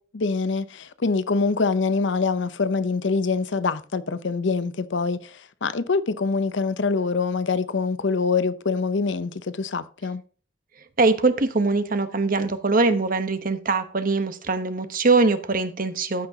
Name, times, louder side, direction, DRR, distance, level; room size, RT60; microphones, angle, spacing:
voice 1, 0.1-10.2, left 4 dB, 70° left, 0.7 m, -25 dB
voice 2, 11.0-16.3, right 3 dB, 45° right, 1.0 m, -22 dB
14.5 x 6.0 x 2.8 m
head